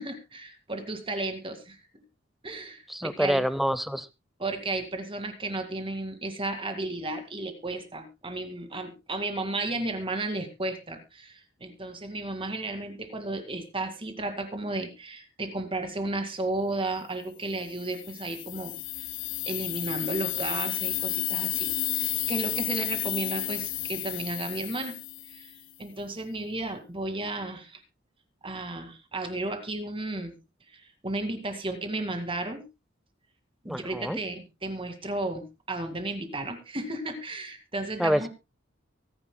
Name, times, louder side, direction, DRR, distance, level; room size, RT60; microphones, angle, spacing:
voice 1, 0.0-1.8 2.4-3.4 4.4-19.1 19.5-24.9 25.3-25.5 25.8-27.8 28.4-30.4 30.7-32.6 33.6-38.3, right 2 dB, 25° right, 7 dB, 2.2 m, -33 dB
voice 2, 2.9-4.1 33.6-34.2 38.0-38.3, equal, ahead, 15 dB, 0.6 m, -26 dB
sound 1, 17.7-25.6, left 16 dB, 80° left, 0.6 m, -32 dB
23.5 x 10.0 x 2.2 m, 0.24 s
head